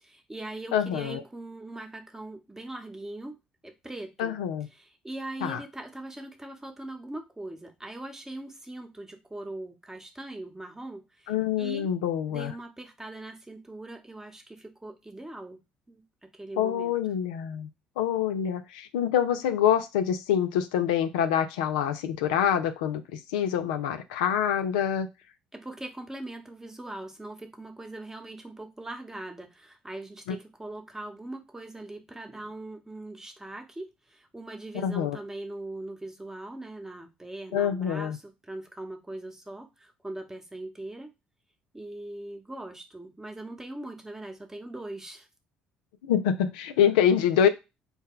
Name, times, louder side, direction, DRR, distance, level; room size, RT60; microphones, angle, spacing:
voice 1, 0.0-3.4 3.6-4.4 4.7-11.9 12.3-15.6 15.9-16.9 25.5-41.1 41.7-45.3, right 2 dB, 10° right, 5 dB, 0.9 m, -41 dB
voice 2, 0.7-1.2 4.2-4.7 5.4-5.6 11.3-12.5 16.6-17.7 18.0-25.1 34.8-35.2 37.5-38.2 46.0-47.5, left 9 dB, 80° left, 9 dB, 0.3 m, -26 dB
4.2 x 2.1 x 3.7 m, 0.25 s
hypercardioid pair, 55°, 4 cm